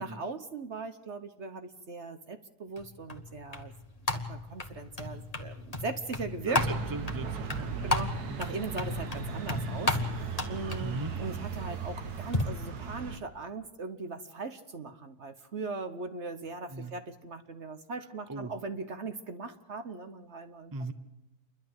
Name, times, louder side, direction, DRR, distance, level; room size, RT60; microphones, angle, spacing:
voice 1, 0.0-3.7 4.1-6.7 7.8-10.0 10.5-20.7, right 3 dB, 50° right, 9 dB, 1.1 m, -39 dB
sound 1, 2.8-12.4, left 2 dB, 25° left, 1.5 m, -35 dB
voice 2, 6.4-7.9 8.3-8.4 10.8-11.1 16.7-16.9 18.3-18.5 20.7-20.9, right 2 dB, 15° right, 10 dB, 0.9 m, -39 dB
sound 2, 6.6-13.2, right 6 dB, 75° right, 1.8 m, -38 dB
29.0 x 11.5 x 7.9 m, 1.0 s
omnidirectional pair, 1.7 m